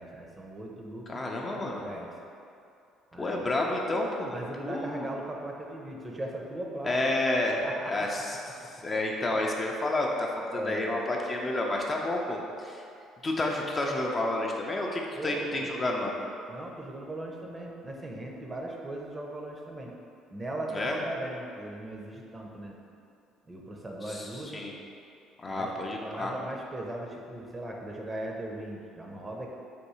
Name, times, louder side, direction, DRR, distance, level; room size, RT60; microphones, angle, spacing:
voice 1, 0.0-2.1 3.1-3.5 4.3-7.0 7.4-8.1 10.5-11.0 15.2-15.7 16.5-19.9 20.3-22.8 23.5-24.6 25.5-25.7 26.0-29.5, right 1 dB, 25° right, 0 dB, 0.6 m, -38 dB
voice 2, 1.1-1.8 3.2-4.4 4.6-5.1 6.8-7.6 7.9-8.4 8.8-12.8 13.2-16.2 20.7-21.0 24.0-24.7 25.4-26.3, left 2 dB, 30° left, -1 dB, 0.5 m, -30 dB
3.6 x 2.6 x 4.2 m, 2.6 s
hypercardioid pair, 50°, 0 cm